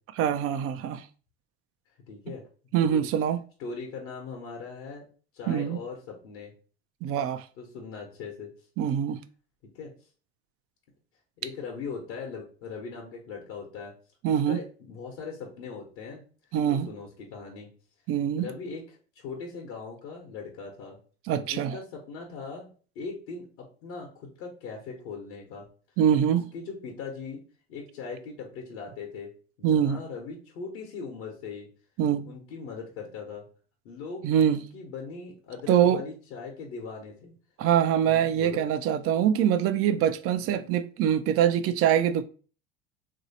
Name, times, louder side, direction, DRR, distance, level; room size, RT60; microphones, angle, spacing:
voice 1, 0.2-1.1 2.7-3.4 5.5-5.8 7.0-7.5 8.8-9.2 14.2-14.6 16.5-16.9 18.1-18.5 21.3-21.8 26.0-26.5 29.6-30.0 32.0-32.2 34.2-34.6 35.7-36.0 37.6-42.2, right 9 dB, 45° right, 0.4 m, -24 dB
voice 2, 2.1-2.4 2.8-3.0 3.6-5.1 5.3-6.5 7.6-8.5 9.7-9.9 11.4-13.9 14.3-16.2 16.7-17.7 18.4-21.0 21.4-22.7 22.9-23.5 23.8-25.6 26.5-27.4 27.7-29.3 29.6-31.7 32.2-33.4 33.8-37.3 38.0-38.6 40.4-40.6, left 5 dB, 75° left, 0.9 m, -40 dB
3.0 x 2.7 x 2.7 m
hypercardioid pair, 80°, 32 cm